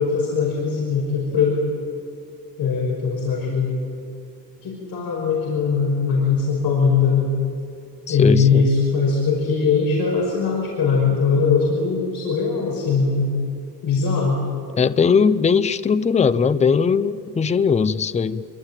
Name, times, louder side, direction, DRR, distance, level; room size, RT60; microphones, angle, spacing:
voice 1, 0.0-1.6 2.6-3.8 4.6-7.3 8.1-13.4 13.8-14.4, left 5 dB, 65° left, -2 dB, 5.6 m, -20 dB
voice 2, 8.1-8.7 14.8-18.5, left 6 dB, 20° left, 14 dB, 0.6 m, -19 dB
27.0 x 24.0 x 9.0 m, 2.5 s
cardioid pair, 165°, 38 cm